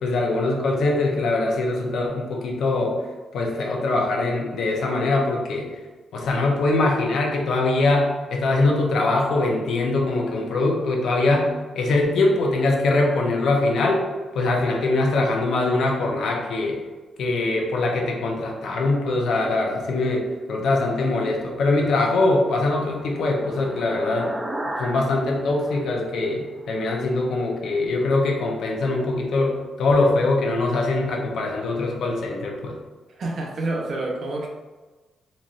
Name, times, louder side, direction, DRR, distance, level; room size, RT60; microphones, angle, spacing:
voice 1, 0.0-2.9 3.3-5.7 6.1-14.0 14.3-16.8 17.2-24.3 24.8-32.8, left 2 dB, 70° left, 0 dB, 0.7 m, -22 dB
sound 1, 22.3-26.8, right 1 dB, 15° right, 0.4 m, -36 dB
voice 2, 33.2-34.5, right 2 dB, 45° right, -1 dB, 0.7 m, -28 dB
4.1 x 3.0 x 2.5 m, 1.2 s
wide cardioid pair, 160°, 0 cm